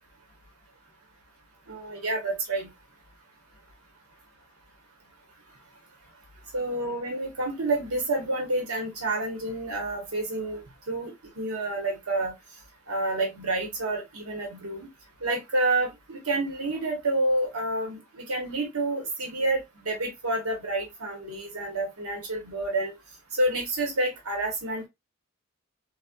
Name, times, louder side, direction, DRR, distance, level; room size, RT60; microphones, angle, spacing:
voice 1, 1.7-2.7 6.5-12.3 12.9-14.9 15.2-22.9 23.3-24.9, right 2 dB, 85° right, 1.0 m, -29 dB
4.0 x 2.1 x 2.2 m
head